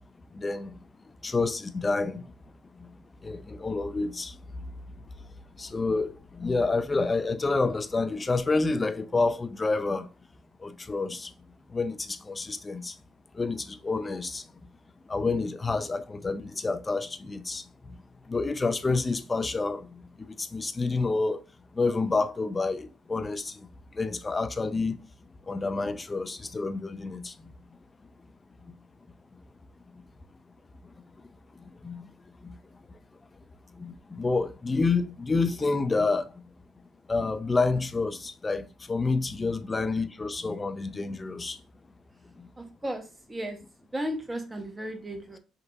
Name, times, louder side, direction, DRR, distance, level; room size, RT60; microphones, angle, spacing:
voice 1, 0.3-2.3 2.6-4.7 5.2-5.3 5.5-10.1 10.6-11.3 11.7-13.0 13.3-14.5 15.1-18.0 18.2-21.4 21.7-25.0 25.4-27.5 28.6-28.7 29.3-29.4 29.9-30.0 30.8-31.3 31.5-33.0 33.7-36.4 37.1-41.6 42.3-42.5, left 3 dB, 25° left, 0.6 m, -29 dB
voice 2, 42.6-43.6 43.9-45.4, equal, 20° right, 1.1 m, -35 dB
5.1 x 2.9 x 2.6 m
hypercardioid pair, 60°, 0 cm